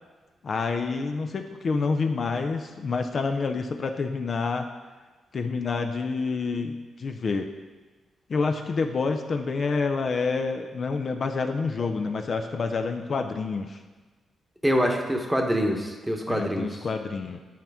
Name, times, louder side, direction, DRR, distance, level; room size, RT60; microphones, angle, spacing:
voice 1, 0.4-4.7 5.3-7.5 8.3-13.8 16.3-17.4, left 4 dB, 50° left, 5 dB, 0.5 m, -28 dB
voice 2, 14.6-16.7, equal, 5° right, 2 dB, 1.0 m, -25 dB
9.2 x 4.4 x 3.5 m, 1.3 s
cardioid pair, 75°, 0 cm